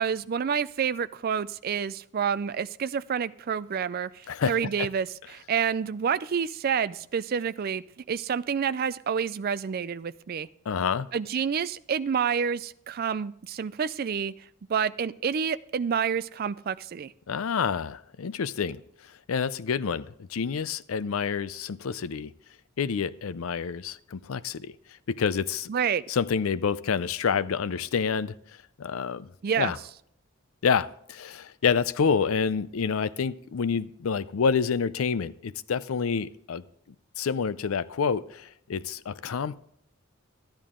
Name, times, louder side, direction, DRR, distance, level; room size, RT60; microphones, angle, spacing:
voice 1, 0.0-10.5 11.1-14.3 14.7-17.1 25.7-26.0 29.4-29.7, right 7 dB, 45° right, 0.3 m, -28 dB
voice 2, 4.3-4.9 10.7-11.1 17.3-18.8 19.3-22.3 22.8-24.8 25.1-25.7 26.1-28.4 28.8-29.3 29.6-29.8 30.6-36.6 37.2-39.6, left 6 dB, 85° left, 0.5 m, -28 dB
13.0 x 10.5 x 3.7 m
head